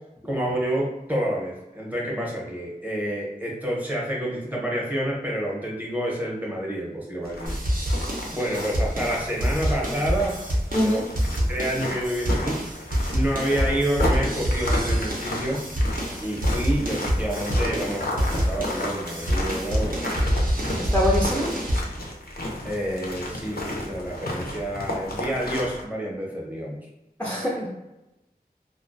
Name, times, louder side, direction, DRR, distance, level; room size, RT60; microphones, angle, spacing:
voice 1, 0.2-7.6 8.3-10.4 10.8-11.1 11.5-12.6 13.1-15.6 16.2-20.4 22.6-26.8, right 1 dB, 10° right, -4 dB, 0.8 m, -28 dB
sound 1, 7.2-25.8, left 1 dB, 75° left, 0.5 m, -33 dB
sound 2, 7.5-21.8, equal, 60° right, 0.6 m, -26 dB
voice 2, 10.7-11.0 20.8-21.5 27.2-27.7, equal, 10° left, -5 dB, 0.5 m, -24 dB
2.4 x 2.1 x 2.6 m, 0.96 s
wide cardioid pair, 45°, 16 cm